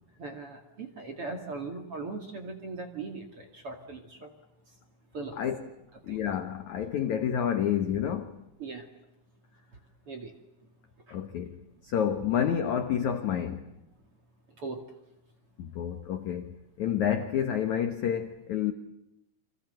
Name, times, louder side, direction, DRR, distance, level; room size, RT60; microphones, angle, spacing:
voice 1, 0.2-4.3 5.1-5.4 6.1-6.2 8.6-8.8 10.1-10.3 14.6-14.8, right 3 dB, 40° right, 2.3 m, -39 dB
voice 2, 5.4-5.7 6.0-8.4 11.1-11.6 11.8-13.6 15.6-18.7, left 9 dB, 75° left, 1.7 m, -29 dB
30.0 x 25.0 x 7.9 m
omnidirectional pair, 5.4 m